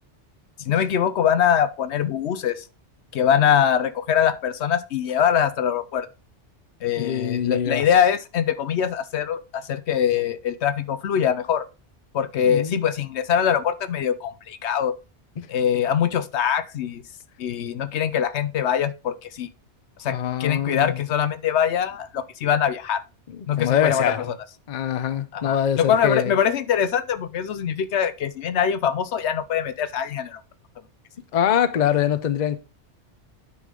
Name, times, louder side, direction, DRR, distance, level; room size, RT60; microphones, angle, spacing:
voice 1, 0.6-2.6 3.1-6.1 6.8-11.6 12.1-15.0 15.5-17.0 17.4-19.5 20.0-23.0 23.5-24.1 25.3-30.4, left 8 dB, 75° left, 0.9 m, -23 dB
voice 2, 7.0-7.9 12.4-12.9 15.4-15.5 20.1-21.0 23.3-24.3 24.7-26.3 31.3-32.6, left 9 dB, 45° left, 0.7 m, -24 dB
9.4 x 5.5 x 3.7 m
omnidirectional pair, 1.2 m